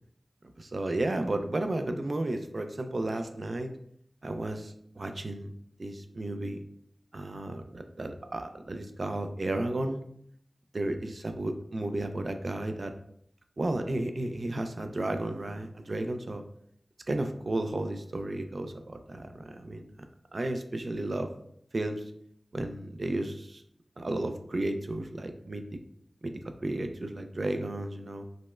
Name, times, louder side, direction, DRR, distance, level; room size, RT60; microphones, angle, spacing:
voice 1, 0.6-3.7 4.2-5.5 5.8-6.6 7.1-10.0 10.7-12.9 13.6-16.4 17.1-19.9 20.3-21.3 21.7-22.1 22.5-23.6 24.0-25.8 26.2-28.2, right 1 dB, 60° right, 7 dB, 0.3 m, -33 dB
4.9 x 2.1 x 2.3 m, 0.68 s
cardioid pair, 45°, 0 cm